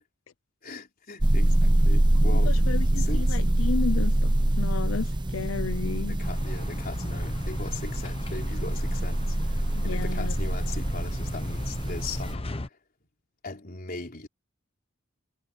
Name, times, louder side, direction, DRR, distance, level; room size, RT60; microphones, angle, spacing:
voice 1, 0.6-2.6 2.9-3.5 6.0-12.8 13.4-14.3, left 3 dB, 45° left, 4.2 m, -39 dB
sound 1, 1.2-12.3, right 1 dB, 20° right, 0.8 m, -25 dB
voice 2, 2.5-4.1 4.6-6.2 9.7-10.3, left 5 dB, 75° left, 0.5 m, -32 dB
sound 2, 6.2-12.7, left 2 dB, 30° left, 1.0 m, -37 dB
head